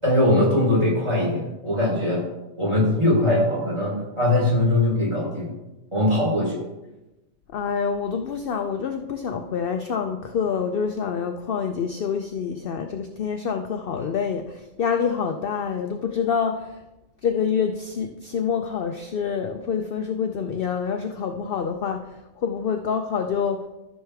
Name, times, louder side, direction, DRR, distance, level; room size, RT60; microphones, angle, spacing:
voice 1, 0.0-2.2 2.6-5.5 5.9-6.5, left 1 dB, 20° right, -5 dB, 4.0 m, -21 dB
voice 2, 7.5-16.8 17.2-22.1 22.4-23.7, left 6 dB, 55° left, 6 dB, 0.7 m, -26 dB
13.5 x 6.5 x 3.4 m, 1.0 s
omnidirectional pair, 1.4 m